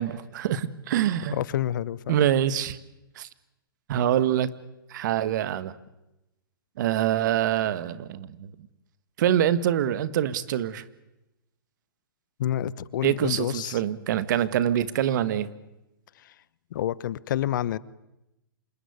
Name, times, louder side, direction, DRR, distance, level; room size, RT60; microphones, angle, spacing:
voice 1, 0.0-1.4 2.1-2.8 3.2-3.3 3.9-4.5 4.9-5.7 6.8-8.5 9.2-10.8 13.0-15.5, right 11 dB, 55° right, 1.8 m, -25 dB
voice 2, 1.3-2.2 12.4-13.8 16.2-16.3 16.7-17.8, left 11 dB, 60° left, 1.1 m, -28 dB
27.0 x 19.5 x 9.8 m
hypercardioid pair, 135°, 12 cm